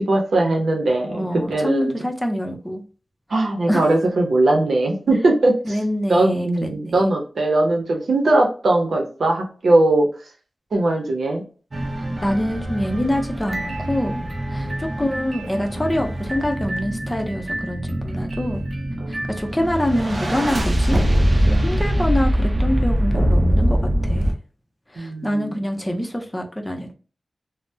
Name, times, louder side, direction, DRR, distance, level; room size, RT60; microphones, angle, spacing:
voice 1, 0.0-2.0 3.3-5.8 6.1-10.1 10.7-11.4 14.6-14.8 19.0-19.1 25.0-25.6, right 2 dB, 85° right, 1 dB, 0.7 m, -20 dB
voice 2, 1.1-2.8 3.7-3.9 5.6-7.0 12.0-14.2 14.5-18.7 19.1-21.0 21.5-24.3 24.9-26.9, left 1 dB, 15° left, 3 dB, 0.6 m, -25 dB
sound 1, 11.7-24.3, equal, 50° right, 0.6 m, -23 dB
3.3 x 2.0 x 2.6 m, 0.38 s
wide cardioid pair, 60°, 0 cm